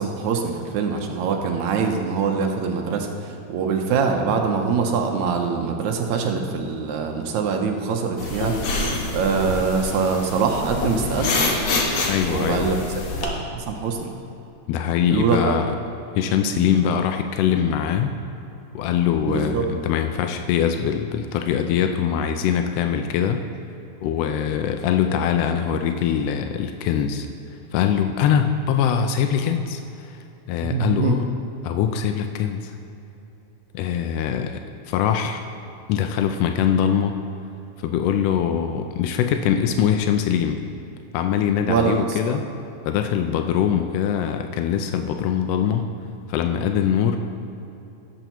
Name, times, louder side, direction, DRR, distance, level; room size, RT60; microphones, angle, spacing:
voice 1, 0.0-8.5 9.1-11.3 12.3-12.8 13.2-14.1 15.1-15.6 16.4-16.7 19.3-19.6 30.6-31.2 41.7-42.4, right 5 dB, 80° right, 3 dB, 2.1 m, -23 dB
sound 1, 8.2-13.2, left 2 dB, 65° left, 2.1 m, -26 dB
voice 2, 12.1-12.8 14.7-15.7 16.1-18.1 18.7-23.4 24.0-27.3 27.7-31.3 31.6-32.7 33.7-34.6 34.9-35.4 35.9-37.2 37.8-40.6 41.1-42.4 42.9-45.9 46.3-47.2, left 8 dB, 80° left, 6 dB, 1.4 m, -22 dB
17.0 x 7.9 x 3.0 m, 2.9 s
omnidirectional pair, 3.4 m